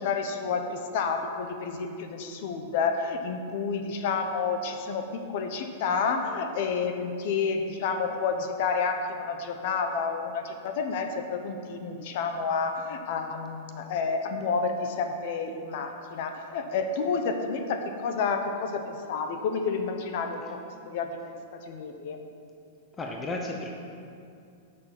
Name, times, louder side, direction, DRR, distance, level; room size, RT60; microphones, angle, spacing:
voice 1, 0.0-22.2, left 5 dB, 45° left, 6 dB, 0.9 m, -30 dB
voice 2, 23.0-23.7, left 2 dB, 10° left, 1 dB, 0.6 m, -33 dB
11.5 x 6.5 x 5.9 m, 2.5 s
supercardioid pair, 170°, 0 cm